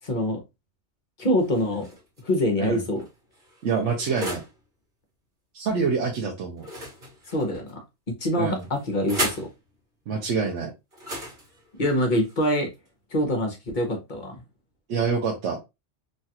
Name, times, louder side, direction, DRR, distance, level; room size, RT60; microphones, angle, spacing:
voice 1, 0.0-0.4 1.2-1.9 2.2-3.0 7.3-7.7 8.1-9.5 11.8-12.7 13.1-14.4, equal, 45° left, 0.9 m, -25 dB
sound 1, 1.4-2.2 2.9-4.6 6.6-7.7 8.5-9.5 10.9-12.9, right 1 dB, 55° right, 1.6 m, -35 dB
voice 2, 3.6-4.4 5.5-6.7 8.4-8.6 10.1-10.7 14.9-15.6, right 5 dB, 80° right, 1.0 m, -26 dB
3.2 x 2.3 x 2.7 m
omnidirectional pair, 1.2 m